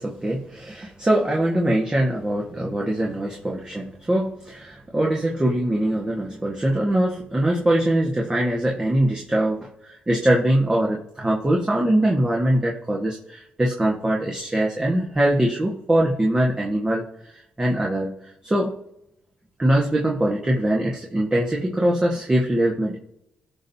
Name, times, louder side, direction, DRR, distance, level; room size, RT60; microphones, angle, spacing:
voice 1, 0.0-17.1 17.6-18.1 18.4-18.7 19.6-23.0, right 1 dB, 20° right, -2 dB, 1.5 m, -22 dB
14.5 x 5.4 x 2.8 m, 0.79 s
supercardioid pair, 65°, 4 cm